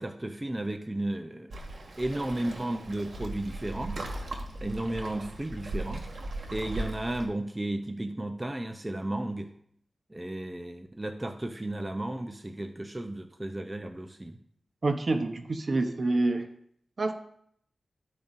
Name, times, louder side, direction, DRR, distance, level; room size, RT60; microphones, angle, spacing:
voice 1, 0.0-1.5 2.0-4.0 4.6-6.1 6.5-9.5 10.1-14.4, right 1 dB, 20° right, 6 dB, 0.6 m, -34 dB
Waves surf, 1.5-7.3, right 2 dB, 75° right, 1.4 m, -38 dB
voice 2, 14.8-16.5 17.0-17.1, right 2 dB, 55° right, 6 dB, 0.9 m, -27 dB
13.5 x 5.2 x 2.6 m, 0.68 s
cardioid pair, 55°, 0 cm